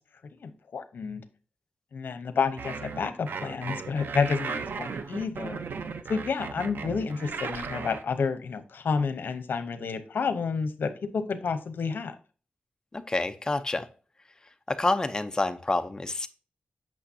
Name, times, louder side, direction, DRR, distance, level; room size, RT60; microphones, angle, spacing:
voice 1, 0.4-1.2 1.9-5.6 6.1-12.1, left 5 dB, 80° left, 11 dB, 0.8 m, -30 dB
sound 1, 2.6-8.0, right 5 dB, 85° right, 0.6 m, -36 dB
voice 2, 12.9-13.9 14.7-16.3, left 2 dB, 20° left, 9 dB, 0.6 m, -28 dB
8.6 x 6.1 x 2.7 m, 0.37 s
wide cardioid pair, 135°, 3 cm